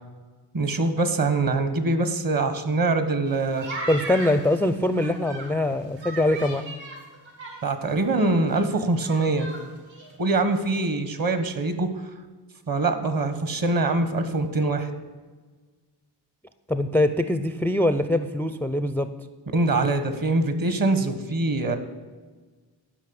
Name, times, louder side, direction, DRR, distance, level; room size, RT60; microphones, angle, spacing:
voice 1, 0.5-3.7 7.6-9.5 10.2-12.1 12.7-14.9 19.5-21.8, right 3 dB, 45° right, 10 dB, 1.4 m, -24 dB
sound 1, 3.3-5.5 6.0-7.9 8.2-8.3 8.5-9.6 9.9-10.1, right 2 dB, 75° right, 3.1 m, -37 dB
voice 2, 3.9-6.7 16.7-19.1, left 1 dB, 5° left, 11 dB, 0.4 m, -23 dB
12.0 x 5.5 x 8.7 m, 1.4 s
wide cardioid pair, 110°, 46 cm